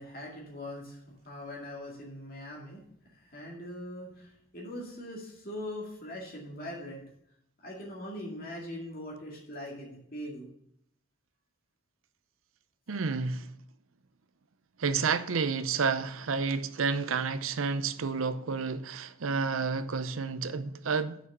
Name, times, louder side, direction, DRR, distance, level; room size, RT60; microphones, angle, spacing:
voice 1, 0.0-7.1 7.6-10.5, left 1 dB, 45° left, 2.2 m, -41 dB
voice 2, 12.9-13.5 14.8-21.2, right 5 dB, 85° right, 0.7 m, -30 dB
6.9 x 6.2 x 7.3 m
head